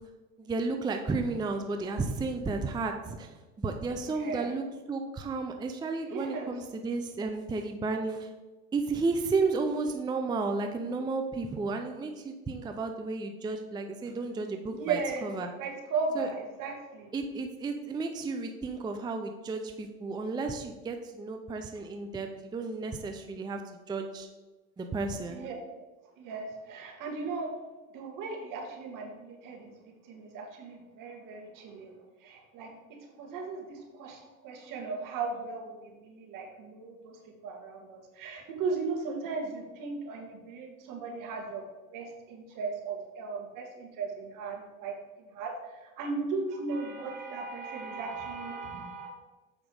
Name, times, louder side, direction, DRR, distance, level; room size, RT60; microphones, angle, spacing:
voice 1, 0.4-3.3 3.6-8.3 8.7-15.5 16.2-16.3 17.1-23.6 23.9-24.3 24.8-25.4, right 3 dB, 10° right, 5 dB, 0.5 m, -33 dB
voice 2, 4.0-4.6 6.1-6.5 14.7-17.1 25.3-25.6 26.2-27.5 27.9-29.8 30.0-31.9 32.2-32.7 33.2-49.1, right 4 dB, 50° right, 1 dB, 2.0 m, -37 dB
7.2 x 5.1 x 4.8 m, 1.2 s
supercardioid pair, 105°, 41 cm